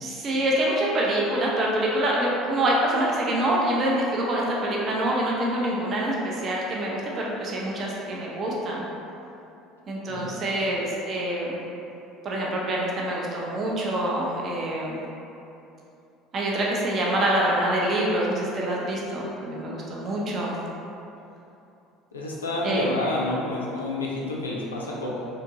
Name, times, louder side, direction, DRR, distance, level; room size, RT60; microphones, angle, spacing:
voice 1, 0.0-8.8 9.9-11.6 12.2-15.0 16.3-20.6 22.6-23.0, right 1 dB, 35° right, -4 dB, 0.5 m, -26 dB
voice 2, 10.1-10.4 22.1-25.3, left 2 dB, 75° left, -4 dB, 0.4 m, -29 dB
3.4 x 2.8 x 2.8 m, 2.8 s
figure-of-eight pair, 65°, 0 cm